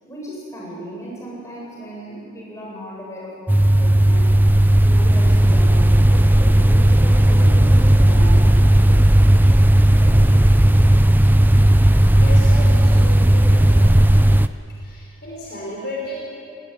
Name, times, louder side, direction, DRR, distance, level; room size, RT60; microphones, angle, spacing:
voice 1, 0.0-4.3 4.8-9.3 9.9-10.3, equal, 15° left, -5 dB, 8.0 m, -35 dB
sound 1, 3.5-14.5, right 1 dB, 10° right, 0.5 m, -14 dB
voice 2, 12.2-13.8 14.8-16.2, left 1 dB, 50° left, -3 dB, 5.0 m, -33 dB
21.0 x 18.5 x 9.7 m, 2.7 s
head